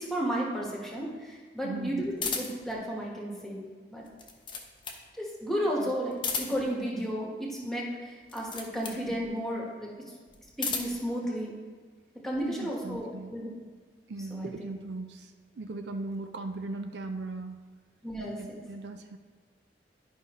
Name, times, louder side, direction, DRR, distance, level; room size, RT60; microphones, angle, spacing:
voice 1, 0.0-3.6 3.9-4.0 5.2-9.9 10.6-11.6 12.2-13.5 14.3-14.7 18.0-18.6, equal, ahead, -3 dB, 1.4 m, -33 dB
voice 2, 1.6-2.0 5.8-5.9 12.4-13.3 14.1-17.7 18.4-19.2, right 2 dB, 70° right, 6 dB, 0.5 m, -38 dB
Minolta Camera Shutter, 2.2-2.7 4.0-5.1 6.1-6.8 8.2-9.0 10.3-11.0, left 5 dB, 30° left, 0.8 m, -34 dB
11.0 x 5.5 x 3.1 m, 1.5 s
head